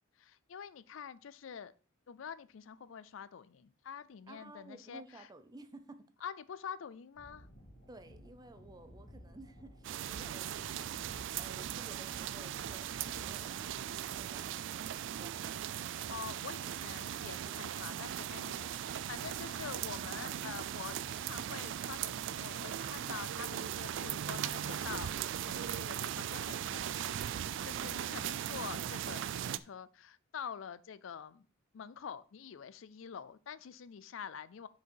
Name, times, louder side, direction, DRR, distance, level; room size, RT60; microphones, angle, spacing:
voice 1, 0.2-1.7 2.1-5.3 6.2-7.5 16.1-31.5 31.7-34.7, left 7 dB, 70° left, 0.4 m, -46 dB
voice 2, 4.3-6.1 7.9-11.1 11.4-15.6, right 2 dB, 20° right, 0.6 m, -54 dB
sound 1, 7.1-14.8, equal, 45° left, 3.0 m, -56 dB
sound 2, 9.8-29.6, right 10 dB, 65° right, 0.3 m, -39 dB
6.7 x 5.0 x 4.5 m
head